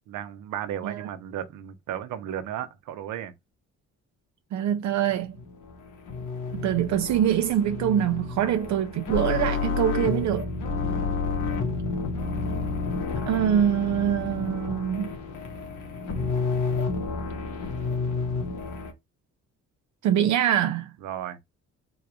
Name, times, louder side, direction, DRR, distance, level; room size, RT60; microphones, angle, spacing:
voice 1, 0.1-3.3 21.0-21.4, right 10 dB, 90° right, 0.8 m, -34 dB
voice 2, 4.5-5.3 6.5-10.5 13.3-15.1 20.0-20.9, right 10 dB, 65° right, 0.5 m, -24 dB
sound 1, 5.1-18.9, left 4 dB, 80° left, 1.4 m, -30 dB
4.0 x 2.4 x 4.7 m
cardioid pair, 90°, 30 cm